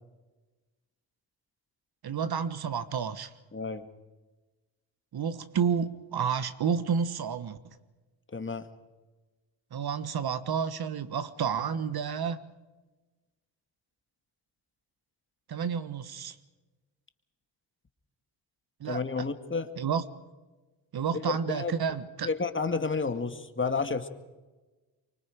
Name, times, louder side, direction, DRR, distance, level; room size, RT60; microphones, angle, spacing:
voice 1, 2.0-3.3 5.1-7.6 9.7-12.4 15.5-16.4 18.8-19.0 19.8-20.0 20.9-22.3, right 7 dB, 55° right, 13 dB, 1.4 m, -30 dB
voice 2, 3.5-3.9 8.3-8.7 18.9-19.7 21.2-21.7 22.2-24.1, left 4 dB, 25° left, 8 dB, 2.0 m, -31 dB
24.5 x 24.5 x 5.1 m, 1.2 s
supercardioid pair, 60°, 46 cm